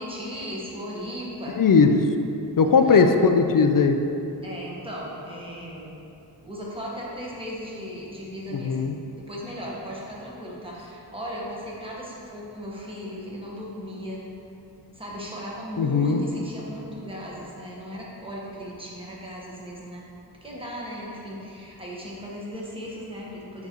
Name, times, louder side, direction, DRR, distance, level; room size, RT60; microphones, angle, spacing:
voice 1, 0.0-1.6 2.6-3.1 4.4-6.0 6.4-8.9 9.1-14.2 14.9-20.0 20.4-23.7, equal, 10° right, -5 dB, 1.2 m, -37 dB
voice 2, 1.6-1.9 2.6-4.0 8.5-8.9 15.8-16.2, left 5 dB, 50° left, 6 dB, 0.5 m, -18 dB
7.6 x 5.9 x 3.0 m, 2.8 s
wide cardioid pair, 115°, 45 cm